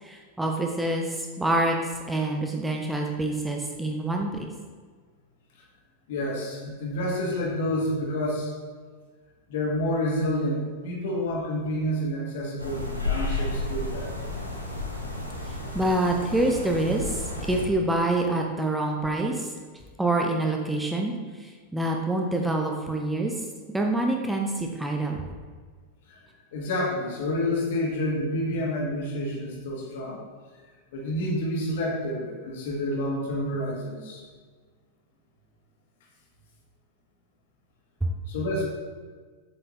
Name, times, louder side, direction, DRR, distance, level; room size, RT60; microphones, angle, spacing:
voice 1, 0.0-4.5 15.5-19.5 20.0-25.2 38.0-38.1, right 2 dB, 5° right, 1 dB, 0.6 m, -26 dB
voice 2, 6.1-8.5 9.5-14.1 26.1-26.2 26.5-30.2 30.9-34.2 38.3-38.6, left 1 dB, 55° left, -3 dB, 1.6 m, -29 dB
sound 1, 12.6-17.7, left 2 dB, 90° right, 0.9 m, -32 dB
7.5 x 4.3 x 3.1 m, 1.5 s
figure-of-eight pair, 90°, 0 cm